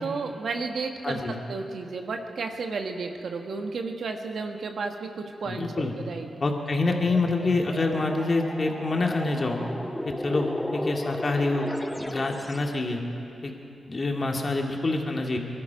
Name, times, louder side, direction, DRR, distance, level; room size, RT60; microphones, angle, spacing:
voice 1, 0.0-1.2 1.5-6.3, right 4 dB, 70° right, 4 dB, 1.4 m, -32 dB
voice 2, 1.0-1.3 5.5-5.9 6.4-9.6 10.0-11.7 12.0-13.0 13.4-13.6 13.9-15.4, left 3 dB, 45° left, 1 dB, 2.3 m, -26 dB
sound 1, 7.0-12.8, left 1 dB, 15° left, 0.8 m, -35 dB
22.5 x 12.5 x 5.2 m, 2.7 s
supercardioid pair, 45°, 0 cm